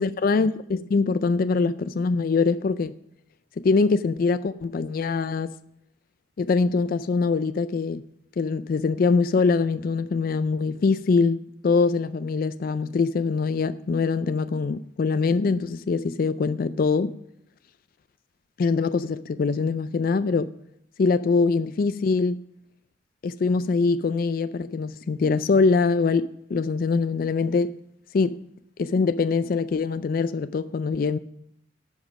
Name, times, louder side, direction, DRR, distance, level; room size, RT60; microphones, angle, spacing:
voice 1, 0.0-3.0 3.6-5.5 6.4-8.0 8.4-11.4 11.6-17.1 18.6-20.5 21.0-22.4 23.2-27.7 28.1-28.4 28.8-31.2, left 4 dB, 50° left, 0.3 m, -23 dB
11.5 x 5.2 x 7.2 m
head